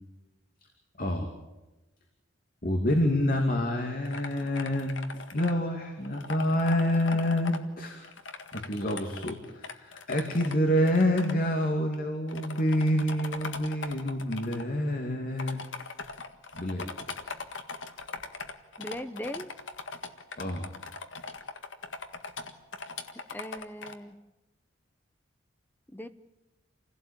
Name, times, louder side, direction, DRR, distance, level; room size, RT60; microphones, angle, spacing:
voice 1, 1.0-1.3 2.6-8.1 8.5-15.6 16.5-16.9 20.4-20.7, left 1 dB, 45° left, 3 dB, 2.7 m, -27 dB
sound 1, 4.0-5.5 6.0-7.6 8.0-11.3 11.9-12.0 12.3-14.6 15.4-23.9, left 4 dB, 70° left, 1.8 m, -40 dB
voice 2, 18.8-19.5 23.3-24.2 25.9-26.1, equal, 10° left, 11 dB, 0.9 m, -39 dB
27.5 x 17.0 x 9.0 m, 1.1 s
head